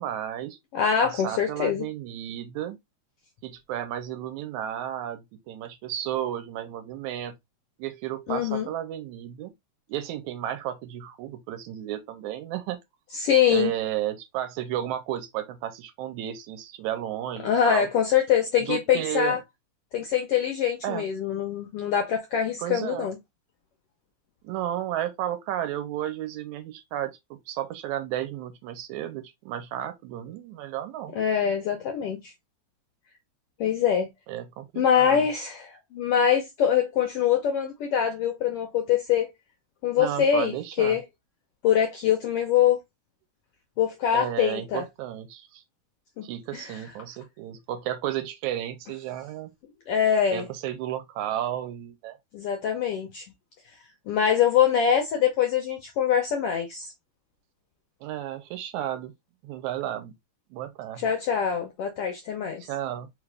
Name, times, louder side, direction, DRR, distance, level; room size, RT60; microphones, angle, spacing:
voice 1, 0.0-0.6 1.0-2.8 3.4-7.4 7.8-9.5 9.9-12.8 13.5-17.9 18.6-19.4 20.8-21.1 22.6-23.1 24.4-31.1 34.3-35.3 40.0-41.0 44.1-45.6 46.2-49.5 50.3-52.2 58.0-59.1 59.4-60.1 60.5-61.1 62.6-63.1, right 12 dB, 80° right, 1.9 m, -33 dB
voice 2, 0.7-1.9 8.3-8.7 13.1-13.7 17.4-19.4 19.9-23.2 31.1-32.3 33.6-34.1 34.8-39.3 39.8-41.0 41.6-42.8 43.8-44.8 46.2-46.3 46.5-46.8 49.9-50.5 52.3-53.3 54.1-56.9 61.0-62.7, left 8 dB, 75° left, 1.3 m, -24 dB
4.6 x 2.5 x 3.3 m
omnidirectional pair, 3.5 m